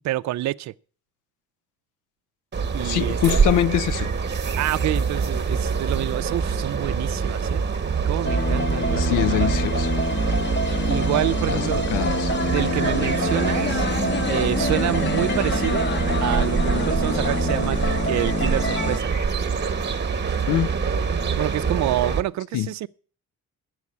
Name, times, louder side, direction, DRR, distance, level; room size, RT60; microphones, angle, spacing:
voice 1, 0.0-0.7 2.7-3.2 4.6-7.7 8.0-9.5 10.9-11.9 12.4-13.9 14.3-15.9 16.2-17.8 18.0-19.1 21.3-22.9, right 15 dB, 65° right, 0.5 m, -27 dB
sound 1, 2.5-22.2, right 5 dB, 35° right, 1.1 m, -25 dB
voice 2, 2.8-4.1 9.0-9.9 11.5-11.6 11.9-12.3 20.5-20.7 22.5-22.7, left 13 dB, 85° left, 0.5 m, -23 dB
sound 2, 8.2-19.0, left 3 dB, 40° left, 1.0 m, -26 dB
9.5 x 7.7 x 8.5 m
cardioid pair, 90°, 30 cm